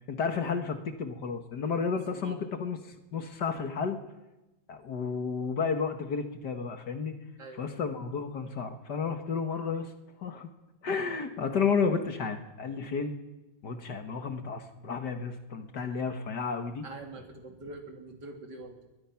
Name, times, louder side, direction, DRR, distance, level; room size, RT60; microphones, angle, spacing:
voice 1, 0.1-2.8 3.1-4.0 4.7-7.1 7.5-9.9 10.2-10.5 10.8-13.2 13.6-16.9, left 5 dB, 60° left, 7 dB, 2.1 m, -32 dB
voice 2, 2.1-2.5 7.4-7.8 16.8-18.9, right 2 dB, 60° right, 2 dB, 3.7 m, -45 dB
22.0 x 21.5 x 5.9 m, 1.0 s
omnidirectional pair, 2.1 m